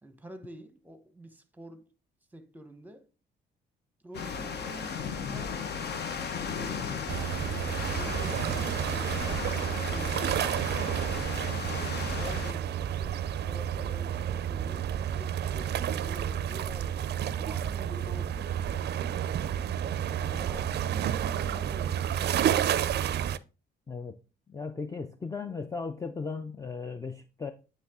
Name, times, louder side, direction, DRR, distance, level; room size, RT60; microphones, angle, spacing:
voice 1, 0.0-1.9 2.3-3.1 4.0-9.2 11.4-13.2 13.4-18.9 20.1-22.5, right 1 dB, 10° right, 1.0 m, -48 dB
sound 1, 4.1-12.5, left 6 dB, 55° left, 0.9 m, -36 dB
sound 2, 7.1-23.4, right 10 dB, 60° right, 0.4 m, -30 dB
voice 2, 23.9-24.2 24.5-27.5, left 4 dB, 15° left, 0.5 m, -36 dB
9.5 x 3.3 x 3.6 m
cardioid pair, 90°, 20 cm